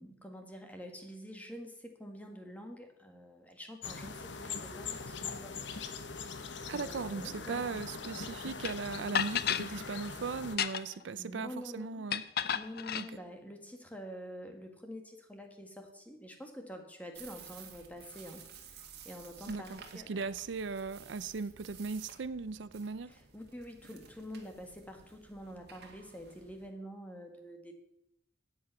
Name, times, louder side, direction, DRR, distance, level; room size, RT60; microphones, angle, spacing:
voice 1, 0.0-5.7 6.6-7.6 10.8-12.1 12.5-18.5 19.0-20.3 23.1-27.7, equal, 10° left, 4 dB, 1.7 m, -47 dB
sound 1, 3.8-10.6, left 5 dB, 80° left, 1.1 m, -42 dB
voice 2, 6.7-12.2 12.9-13.0 19.5-23.1, right 4 dB, 80° right, 15 dB, 0.5 m, -38 dB
sound 2, 8.6-8.7 9.1-9.7 10.4-11.0 12.1-13.1, left 9 dB, 55° left, 0.5 m, -32 dB
sound 3, 17.1-26.7, right 7 dB, 60° right, 2.0 m, -54 dB
13.5 x 8.8 x 5.8 m, 0.85 s
head